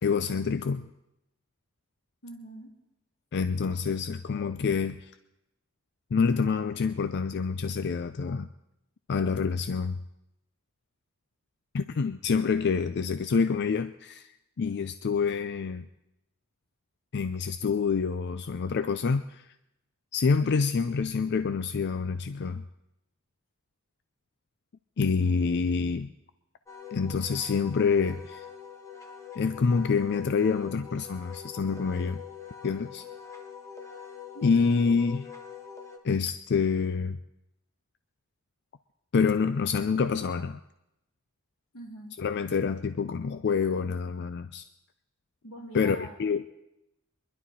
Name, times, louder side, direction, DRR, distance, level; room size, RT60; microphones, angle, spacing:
voice 1, 0.0-0.9 3.3-5.0 6.1-8.5 9.1-10.0 11.7-14.3 14.6-15.9 17.1-19.5 20.1-22.6 25.0-26.1 26.9-28.5 29.4-32.2 32.6-33.0 34.4-35.3 36.0-37.2 39.1-40.6 42.2-44.7 45.7-46.5, left 5 dB, 55° left, 11 dB, 0.4 m, -27 dB
voice 2, 2.2-2.8 25.0-25.3 34.3-34.7 41.7-42.2 45.4-46.3, right 1 dB, 90° left, 0 dB, 2.8 m, -44 dB
Wind instrument woodwind instrument, 26.7-36.0, left 7 dB, 15° left, 1.3 m, -44 dB
23.0 x 11.5 x 4.2 m, 0.86 s
head